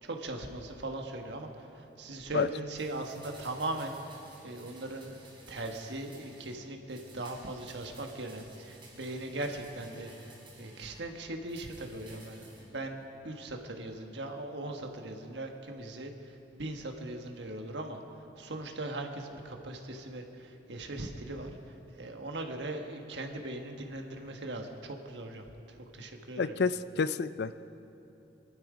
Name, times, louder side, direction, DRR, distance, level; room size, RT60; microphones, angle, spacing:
voice 1, 0.0-4.2 4.4-5.2 5.5-10.1 10.6-21.5 21.9-26.7, right 2 dB, 75° right, 3 dB, 1.5 m, -39 dB
sound 1, 2.8-6.6 6.9-11.0 11.4-12.7 13.0-13.1, right 2 dB, 30° right, 4.2 m, -54 dB
voice 2, 26.4-27.5, left 5 dB, 65° left, 14 dB, 0.4 m, -29 dB
23.0 x 12.0 x 5.1 m, 2.9 s
head